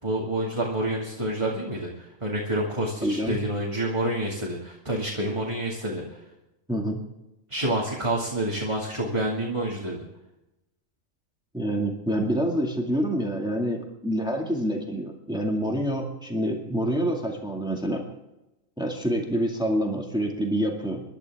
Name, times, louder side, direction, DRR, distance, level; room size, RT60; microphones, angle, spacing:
voice 1, 0.0-6.2 7.5-10.0, right 1 dB, 20° right, -3 dB, 2.4 m, -28 dB
voice 2, 3.0-3.4 6.7-7.0 11.5-18.0 18.8-21.0, equal, 5° right, 1 dB, 2.1 m, -27 dB
25.5 x 12.0 x 3.6 m, 0.95 s
omnidirectional pair, 1.4 m